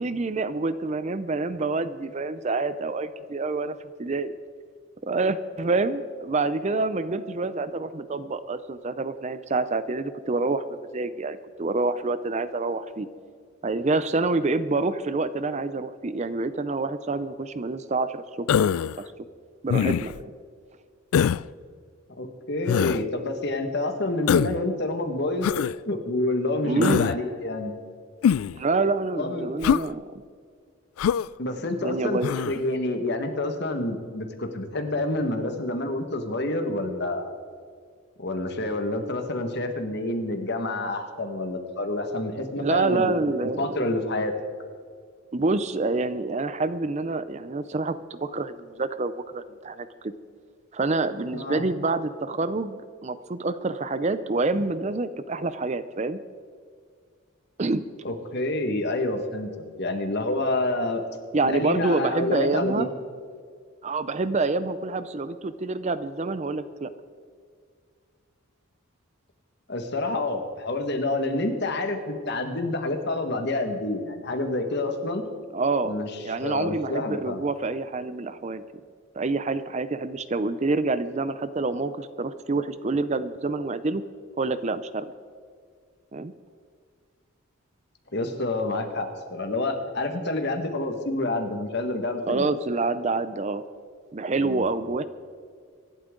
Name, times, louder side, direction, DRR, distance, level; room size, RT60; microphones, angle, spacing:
voice 1, 0.0-4.3 5.0-13.1 13.6-18.7 19.6-20.3 26.6-27.1 28.5-30.2 31.6-32.3 42.6-43.9 45.3-50.1 50.7-56.2 57.6-57.8 61.3-62.9 63.8-66.9 75.5-75.9 76.2-78.6 79.2-84.0 84.4-85.1 86.1-86.3 92.3-93.6 94.1-95.0, right 3 dB, 35° right, 13 dB, 0.5 m, -27 dB
Human voice, 18.5-19.0 19.7-20.2 21.1-21.4 22.7-23.0 24.3-24.6 25.4-25.7 26.8-27.2 28.2-28.6 29.6-29.9 31.0-31.3 32.2-32.6, left 8 dB, 90° left, 0.3 m, -23 dB
voice 2, 22.2-25.5 25.8-27.8 29.2-29.5 31.4-32.2 32.5-37.3 38.2-44.3 51.3-51.6 58.0-59.5 59.8-61.0 61.4-62.9 69.7-75.2 75.8-76.1 76.4-77.4 88.1-92.5 94.4-94.6, left 2 dB, 55° left, 5 dB, 1.6 m, -28 dB
25.0 x 11.5 x 3.8 m, 2.1 s
head